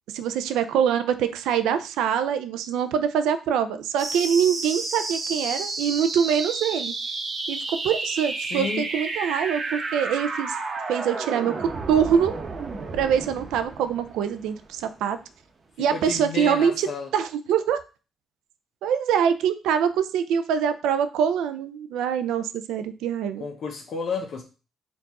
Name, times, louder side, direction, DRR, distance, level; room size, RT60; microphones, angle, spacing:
voice 1, 0.1-6.9 7.5-10.6 10.9-12.3 12.9-15.2 15.8-17.8 18.8-23.4, right 8 dB, 90° right, 11 dB, 0.4 m, -24 dB
sound 1, 4.0-15.0, right 3 dB, 45° right, 0.8 m, -31 dB
voice 2, 8.5-8.9 15.9-17.1 23.4-24.4, left 5 dB, 65° left, 1 dB, 0.7 m, -31 dB
4.4 x 2.4 x 4.0 m, 0.33 s
cardioid pair, 90°, 0 cm